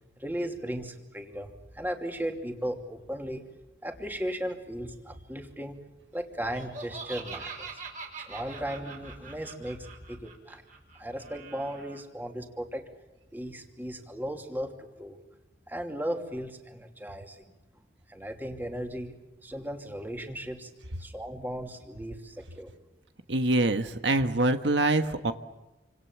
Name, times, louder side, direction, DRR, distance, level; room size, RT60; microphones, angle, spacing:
voice 1, 0.2-3.4 3.8-5.8 6.1-7.8 8.2-10.6 11.0-12.8 13.3-15.2 15.7-17.4 18.1-19.2 19.4-20.7 21.0-22.7, equal, 10° right, 3 dB, 2.8 m, -36 dB
Laughter, 6.4-12.0, right 4 dB, 45° right, 4.8 m, -43 dB
voice 2, 23.3-25.3, right 2 dB, 80° right, 8 dB, 1.5 m, -25 dB
29.5 x 26.5 x 7.4 m, 1.1 s
head